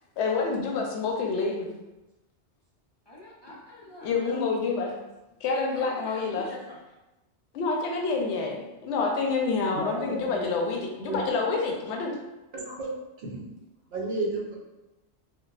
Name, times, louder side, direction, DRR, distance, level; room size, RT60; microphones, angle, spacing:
voice 1, 0.2-1.7 4.0-4.9 5.4-6.4 7.5-12.1, left 4 dB, 80° left, 1 dB, 0.9 m, -28 dB
voice 2, 3.1-4.4 5.5-6.8, left 1 dB, 40° left, -7 dB, 0.3 m, -43 dB
voice 3, 9.7-10.5 11.0-11.2 12.5-12.9 13.2-13.4 13.9-14.6, right 2 dB, 65° right, -2 dB, 0.9 m, -33 dB
4.4 x 2.0 x 2.3 m, 1.0 s
omnidirectional pair, 1.2 m